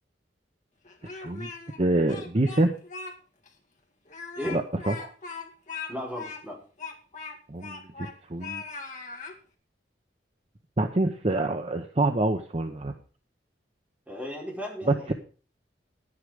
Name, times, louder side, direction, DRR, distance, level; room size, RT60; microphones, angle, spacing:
Speech, 0.8-1.8 2.1-3.1 3.5-3.6 4.1-8.2 8.4-9.4, left 4 dB, 45° left, 2.2 m, -39 dB
voice 1, 1.2-1.5 1.8-2.7 4.5-5.1 7.5-8.6 10.8-12.9 14.9-15.1, right 2 dB, 35° right, 6 dB, 0.8 m, -26 dB
voice 2, 5.9-6.6 14.1-15.1, equal, 10° right, -3 dB, 4.9 m, -35 dB
11.5 x 9.7 x 5.0 m, 0.38 s
head